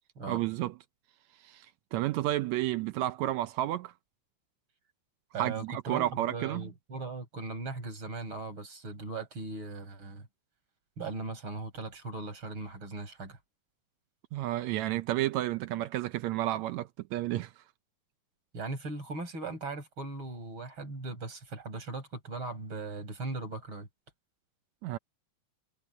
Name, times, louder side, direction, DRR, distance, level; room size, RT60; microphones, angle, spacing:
voice 1, 0.3-0.7 1.4-1.7 1.9-3.9 5.4-6.7 14.3-17.5 24.8-25.0, right 14 dB, 75° right, 1.7 m, -31 dB
voice 2, 5.3-10.3 11.0-13.4 18.5-23.9, right 3 dB, 40° right, 5.8 m, -38 dB
omnidirectional pair, 3.6 m